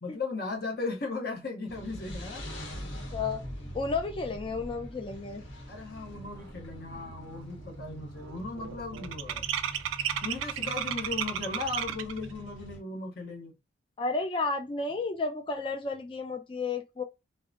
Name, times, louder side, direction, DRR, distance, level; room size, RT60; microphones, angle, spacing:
voice 1, 0.0-2.4 5.7-9.5 10.2-13.5, left 3 dB, 50° left, 0.8 m, -37 dB
sound 1, 1.7-12.8, equal, 70° left, 1.0 m, -43 dB
voice 2, 3.1-3.4 3.7-5.4 14.0-17.0, left 3 dB, 25° left, 0.3 m, -32 dB
sound 2, 7.0-7.4 7.6-12.3, right 10 dB, 80° right, 0.3 m, -34 dB
2.6 x 2.1 x 2.4 m
head